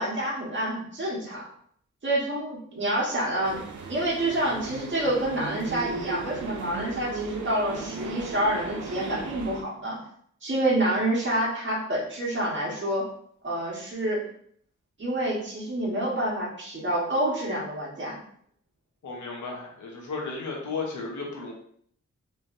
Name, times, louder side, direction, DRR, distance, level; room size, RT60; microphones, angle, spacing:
voice 1, 0.0-1.4 2.0-10.0 10.4-13.1 13.4-14.2 15.0-18.2, right 1 dB, 40° right, -6 dB, 1.5 m, -28 dB
sound 1, 3.4-9.6, right 4 dB, 85° right, 0.6 m, -36 dB
voice 2, 19.0-21.5, left 4 dB, 85° left, -1 dB, 1.2 m, -34 dB
4.4 x 3.0 x 2.7 m, 0.63 s
cardioid pair, 75°, 29 cm